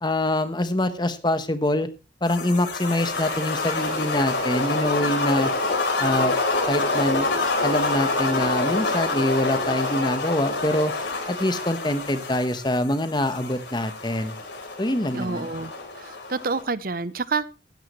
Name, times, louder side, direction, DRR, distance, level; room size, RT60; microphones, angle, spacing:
voice 1, 0.0-1.9 2.2-5.5 6.0-6.3 6.7-7.3 7.6-10.9 11.3-14.3 14.8-15.5, left 1 dB, 25° left, 11 dB, 1.1 m, -24 dB
sound 1, 2.3-16.6, left 3 dB, 65° left, 3.8 m, -27 dB
voice 2, 15.1-17.5, right 4 dB, 50° right, 17 dB, 0.7 m, -28 dB
15.5 x 12.0 x 3.1 m, 0.30 s
head